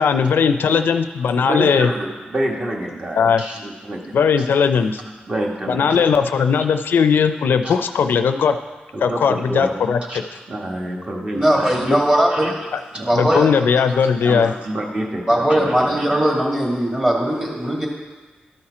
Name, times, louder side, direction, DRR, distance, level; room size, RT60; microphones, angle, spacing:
voice 1, 0.0-1.9 3.2-3.4 4.1-5.0 5.7-8.6 9.0-10.2 12.7-12.8 13.1-14.5, left 6 dB, 85° left, 9 dB, 0.4 m, -18 dB
voice 2, 1.4-4.5 4.7-6.1 7.6-7.8 8.9-9.7 10.1-10.2 10.5-11.9 12.3-12.5 12.9-13.4 13.9-16.2, right 1 dB, 35° right, -1 dB, 1.3 m, -28 dB
voice 3, 11.3-12.6 13.0-13.5 15.3-17.9, right 1 dB, 15° right, -2 dB, 1.8 m, -19 dB
12.0 x 4.3 x 4.9 m, 1.4 s
wide cardioid pair, 120°, 3 cm